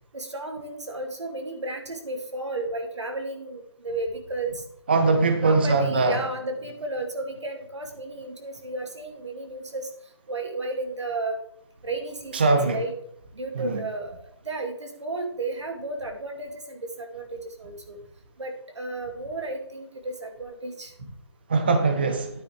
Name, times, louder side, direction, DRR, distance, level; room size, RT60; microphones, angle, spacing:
voice 1, 0.1-4.6 5.2-9.9 10.3-11.4 11.8-12.9 13.3-14.2 14.5-18.0 18.4-21.1, right 2 dB, 90° right, 4 dB, 2.3 m, -33 dB
voice 2, 4.9-6.2 12.3-12.8 13.6-13.8 21.5-22.3, right 3 dB, 20° right, 7 dB, 0.6 m, -21 dB
9.6 x 9.6 x 3.3 m, 0.70 s
hypercardioid pair, 175°, 14 cm